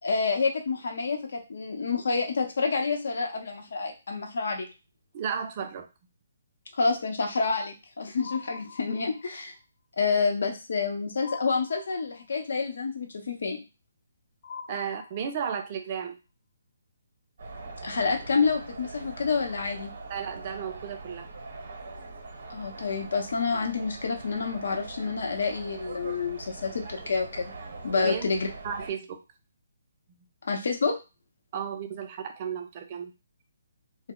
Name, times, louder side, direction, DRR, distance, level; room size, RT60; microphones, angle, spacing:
voice 1, 0.0-4.7 6.7-9.5 10.0-13.6 17.8-19.9 22.5-27.5 27.8-28.5 30.4-31.0, left 4 dB, 70° left, 3 dB, 0.7 m, -28 dB
voice 2, 5.1-5.9 14.7-16.2 20.1-21.3 28.0-28.3 28.6-29.2 30.1-30.3 31.5-33.1, right 7 dB, 35° right, 6 dB, 0.4 m, -34 dB
sound 1, 8.2-9.4 11.2-12.4 14.4-15.7, left 6 dB, 30° left, 0.8 m, -44 dB
sound 2, 17.4-28.9, right 3 dB, 60° right, 0.8 m, -42 dB
2.1 x 2.0 x 3.6 m, 0.29 s
hypercardioid pair, 160°, 0 cm